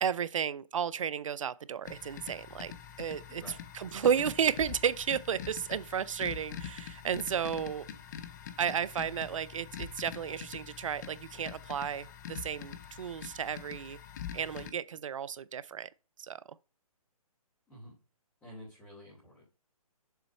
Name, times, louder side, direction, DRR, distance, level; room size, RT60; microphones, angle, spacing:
voice 1, 0.0-2.7 3.0-3.4 3.7-7.9 8.6-14.0 14.3-15.9 16.2-16.4, right 8 dB, 60° right, 0.4 m, -33 dB
sound 1, 1.8-14.7, left 8 dB, 30° left, 0.5 m, -45 dB
voice 2, 18.4-19.4, equal, 10° left, 2.7 m, -49 dB
6.9 x 3.9 x 4.3 m
hypercardioid pair, 145°, 19 cm